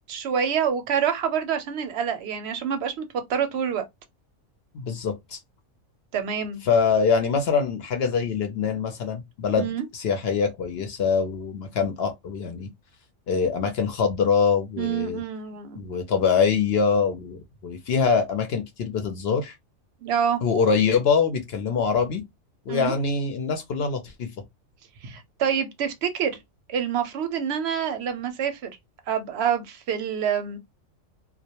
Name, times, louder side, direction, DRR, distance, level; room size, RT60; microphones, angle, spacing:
voice 1, 0.1-3.8 6.1-6.6 9.6-9.8 14.8-15.8 20.0-20.4 22.7-22.9 25.0-26.4 26.7-28.7 29.1-30.6, right 8 dB, 65° right, 0.7 m, -27 dB
voice 2, 4.7-5.4 6.6-9.7 9.9-12.7 13.3-15.2 15.8-19.5 20.4-22.2 22.7-24.3, left 5 dB, 65° left, 0.7 m, -24 dB
2.2 x 2.1 x 2.8 m
omnidirectional pair, 1.4 m